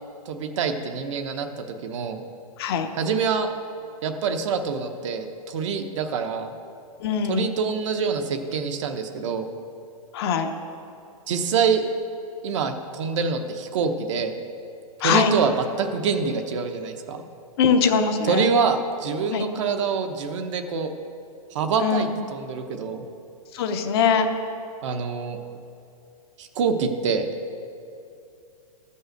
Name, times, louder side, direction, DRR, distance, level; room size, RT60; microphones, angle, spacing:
voice 1, 0.3-1.5 1.8-2.2 3.0-3.5 4.0-6.5 7.3-9.5 11.3-11.8 12.4-14.3 15.0-17.2 18.3-20.9 21.5-23.0 24.8-25.4 26.4-27.3, right 5 dB, 50° right, 6 dB, 0.9 m, -25 dB
voice 2, 2.6-2.9 7.0-7.6 10.1-10.5 15.0-15.3 17.6-18.5 19.3-19.5 21.8-22.1 23.5-24.3, left 6 dB, 40° left, 6 dB, 0.8 m, -22 dB
12.5 x 5.5 x 7.8 m, 2.6 s
hypercardioid pair, 160°, 20 cm